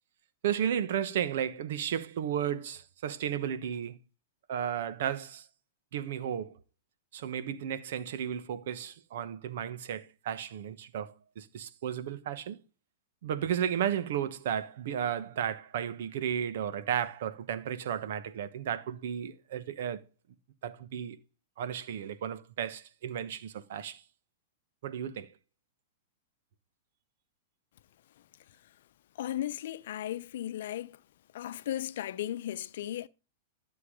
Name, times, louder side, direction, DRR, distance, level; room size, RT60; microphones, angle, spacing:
voice 1, 0.4-4.0 4.5-5.4 5.9-6.6 7.1-12.6 13.2-20.0 20.6-21.2 21.6-24.0 24.8-25.3, right 9 dB, 65° right, 1.3 m, -34 dB
voice 2, 29.2-31.0 31.3-33.1, left 12 dB, 65° left, 0.7 m, -36 dB
13.0 x 7.1 x 5.2 m
hypercardioid pair, 110°, 0 cm